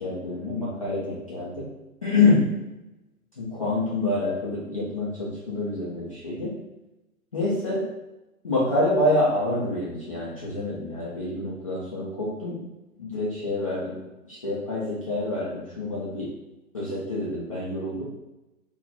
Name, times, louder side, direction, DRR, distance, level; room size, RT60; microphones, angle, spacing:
voice 1, 0.0-1.7 2.0-2.5 3.4-6.6 7.3-7.9 8.4-12.6 13.0-14.0 14.3-16.3 16.7-18.0, left 2 dB, 25° left, -8 dB, 0.4 m, -26 dB
2.6 x 2.3 x 3.9 m, 1.0 s
hypercardioid pair, 140°, 44 cm